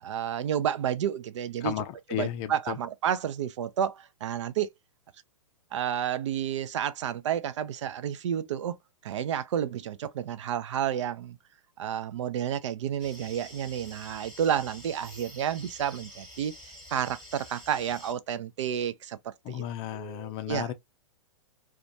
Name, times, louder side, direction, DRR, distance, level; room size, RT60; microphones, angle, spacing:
voice 1, 0.0-1.7 2.1-4.7 5.7-8.8 9.0-11.4 11.8-16.5 16.9-19.6 19.9-20.7, right 9 dB, 55° right, 0.4 m, -31 dB
voice 2, 1.6-2.8 19.4-20.7, left 12 dB, 30° left, 0.4 m, -34 dB
sound 1, 13.0-18.1, left 1 dB, ahead, 1.2 m, -48 dB
2.4 x 2.3 x 2.6 m
figure-of-eight pair, 110°, 18 cm